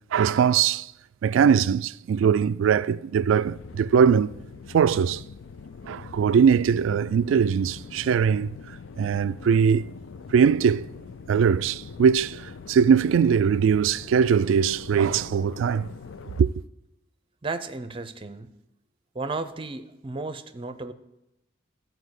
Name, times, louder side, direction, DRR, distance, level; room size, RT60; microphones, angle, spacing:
voice 1, 0.1-0.9 1.2-4.3 4.7-5.2 5.9-8.5 9.0-9.9 10.3-10.9 11.3-15.9 16.4-16.5, right 7 dB, 70° right, 0.3 m, -21 dB
sound 1, 3.4-16.4, left 5 dB, 65° left, 0.4 m, -43 dB
voice 2, 17.4-18.5 19.1-20.9, right 3 dB, 25° right, 0.7 m, -33 dB
13.5 x 4.6 x 8.1 m
head